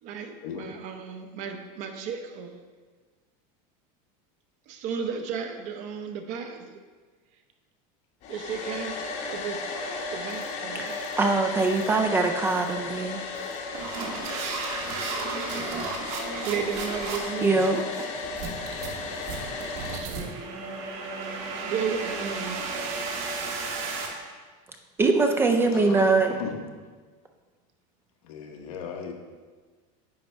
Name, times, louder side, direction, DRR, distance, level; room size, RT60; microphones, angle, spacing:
voice 1, 0.0-2.6 4.7-6.8 8.3-11.2 16.3-17.7 19.8-20.5 21.5-22.8 25.8-26.1, right 6 dB, 45° right, 6 dB, 0.7 m, -34 dB
Domestic sounds home sounds, 8.2-20.0, left 3 dB, 40° left, 0.8 m, -35 dB
sound 1, 10.3-10.5 10.9-11.1 11.6-11.9 12.5-12.7 13.4-24.1, right 4 dB, 70° right, 1.5 m, -34 dB
voice 2, 10.7-13.2 17.4-18.1 25.0-26.4, right 3 dB, 15° right, 4 dB, 0.3 m, -23 dB
voice 3, 25.7-26.7 28.2-29.1, left 6 dB, 85° left, 3 dB, 1.2 m, -37 dB
9.5 x 5.3 x 3.4 m, 1.4 s
cardioid pair, 165°, 18 cm